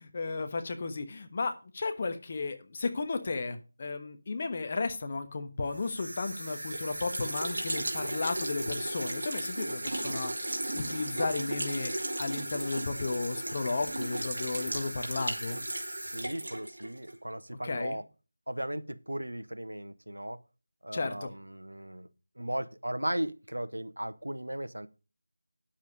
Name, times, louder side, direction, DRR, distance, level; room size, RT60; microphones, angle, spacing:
voice 1, 0.0-11.9 12.2-15.6 17.6-18.0 20.9-21.3, left 3 dB, 30° left, 8 dB, 1.3 m, -34 dB
sound 1, 5.7-17.2, right 1 dB, 60° right, 2.8 m, -35 dB
voice 2, 16.0-18.0 18.5-20.4 20.8-22.1 22.4-24.9, right 1 dB, 85° right, 11 dB, 1.3 m, -36 dB
9.3 x 7.3 x 5.2 m, 0.33 s
figure-of-eight pair, 170°, 0 cm